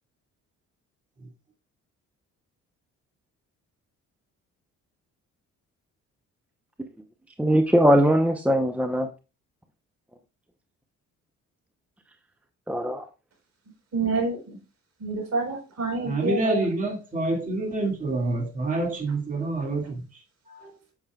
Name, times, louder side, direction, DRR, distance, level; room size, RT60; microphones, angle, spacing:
voice 1, 7.4-9.1 12.7-13.1, equal, 5° right, 0.8 m, -20 dB
voice 2, 13.9-14.6 15.0-16.7, right 3 dB, 55° right, 4.3 m, -28 dB
voice 3, 16.0-20.8, right 2 dB, 25° right, 2.3 m, -28 dB
8.6 x 7.2 x 2.4 m
cardioid pair, 90°, 30 cm